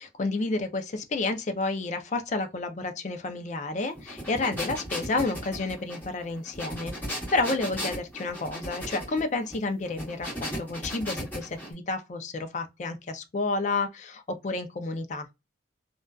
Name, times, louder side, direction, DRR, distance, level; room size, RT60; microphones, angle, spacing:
voice 1, 0.0-15.3, left 3 dB, 40° left, 0.4 m, -30 dB
sound 1, 3.9-11.7, equal, 10° left, 0.9 m, -36 dB
2.5 x 2.2 x 2.2 m
head